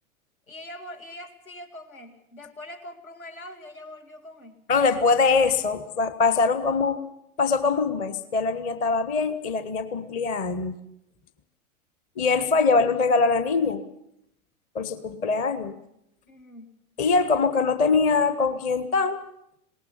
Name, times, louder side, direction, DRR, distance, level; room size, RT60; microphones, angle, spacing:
voice 1, 0.5-4.6 16.3-16.7, left 1 dB, 75° left, 6 dB, 2.6 m, -43 dB
voice 2, 4.7-7.0 7.4-10.7 12.2-13.8 14.7-15.8 17.0-19.2, left 4 dB, 20° left, 12 dB, 0.7 m, -23 dB
20.5 x 18.0 x 7.2 m, 0.79 s
figure-of-eight pair, 105°, 43 cm